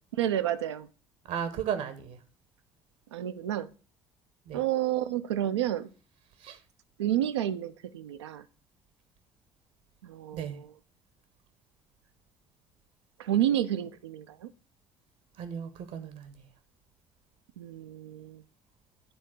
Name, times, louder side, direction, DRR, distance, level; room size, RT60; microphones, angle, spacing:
voice 1, 0.2-0.9 3.1-3.7 4.5-5.9 7.0-8.4 10.0-10.7 13.2-14.5 17.6-18.4, right 12 dB, 75° right, 0.5 m, -30 dB
voice 2, 1.3-2.2 4.5-4.6 6.4-6.6 10.3-10.6 15.4-16.4, right 8 dB, 55° right, 0.9 m, -35 dB
10.5 x 3.6 x 6.2 m
figure-of-eight pair, 55°, 15 cm